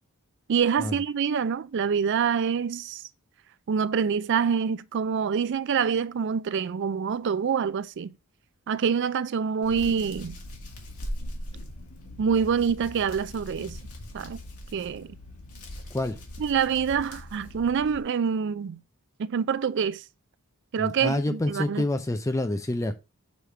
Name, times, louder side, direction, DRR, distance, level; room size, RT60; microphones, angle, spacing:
voice 1, 0.5-3.0 3.7-8.1 8.7-10.4 12.2-13.8 14.1-14.4 14.7-15.2 16.4-18.8 19.2-20.0 20.7-21.8, right 6 dB, 50° right, 0.3 m, -26 dB
Hands, 9.6-18.0, left 1 dB, 90° left, 1.9 m, -40 dB
voice 2, 20.8-22.9, left 1 dB, 15° left, 0.4 m, -27 dB
6.4 x 3.5 x 4.3 m
head